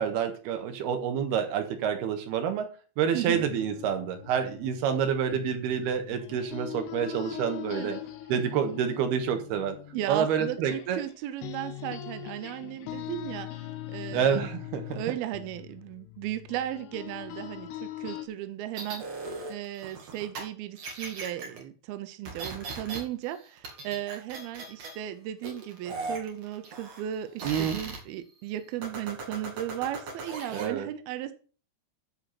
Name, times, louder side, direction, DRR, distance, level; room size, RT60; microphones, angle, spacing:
voice 1, 0.0-2.7 3.0-8.0 8.3-9.8 10.1-11.0 14.1-15.0 27.4-27.8 30.5-30.9, right 8 dB, 65° right, 6 dB, 3.0 m, -28 dB
sound 1, 3.3-11.1 11.4-18.3, left 12 dB, 70° left, 2.9 m, -41 dB
voice 2, 9.9-13.6 13.9-14.4 14.9-19.1 19.5-31.3, right 12 dB, 85° right, 11 dB, 2.1 m, -36 dB
sound 2, 18.8-20.4 20.8-21.6 22.3-23.0 23.3-25.0 25.4-27.1 27.4-28.0 28.8-30.7, right 3 dB, 45° right, 2.4 m, -38 dB
13.0 x 4.7 x 5.9 m, 0.38 s
omnidirectional pair, 5.7 m